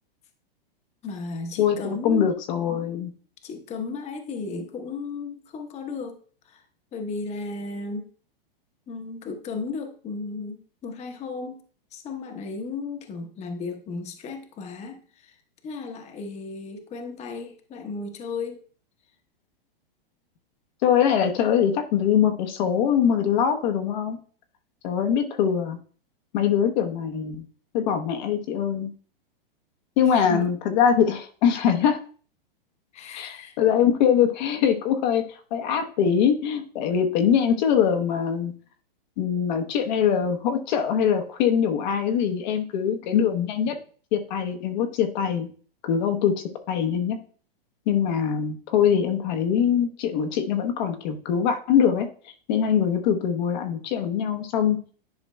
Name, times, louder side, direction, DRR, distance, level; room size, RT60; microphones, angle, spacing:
voice 1, 1.0-2.3 3.4-6.6 6.9-8.1 8.9-11.6 11.9-15.4 15.6-18.6 30.1-30.4 32.9-33.6, left 4 dB, 25° left, 6 dB, 0.9 m, -34 dB
voice 2, 1.6-3.1 20.8-24.2 24.8-25.8 26.3-27.4 27.7-28.9 30.0-32.0 33.2-38.5 39.2-43.8 44.1-45.5 45.8-47.2 47.9-52.1 52.5-54.8, left 8 dB, 50° left, 5 dB, 0.9 m, -23 dB
10.5 x 4.9 x 2.2 m, 0.42 s
hypercardioid pair, 120°, 29 cm